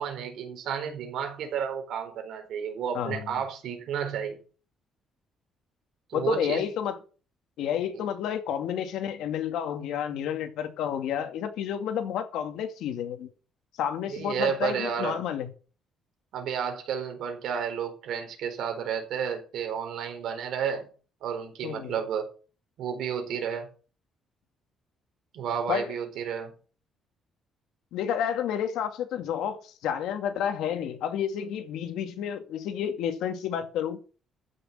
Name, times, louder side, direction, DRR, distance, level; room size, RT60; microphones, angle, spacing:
voice 1, 0.0-4.4 6.1-6.6 14.1-15.2 16.3-20.9 21.2-22.3 22.8-23.7 25.3-26.5, right 7 dB, 60° right, 4.4 m, -31 dB
voice 2, 2.9-3.3 6.1-7.0 7.6-13.3 13.8-15.5 21.6-21.9 25.7-25.9 27.9-34.0, left 9 dB, 80° left, 2.3 m, -30 dB
14.5 x 6.8 x 7.5 m
cardioid pair, 175°, 0 cm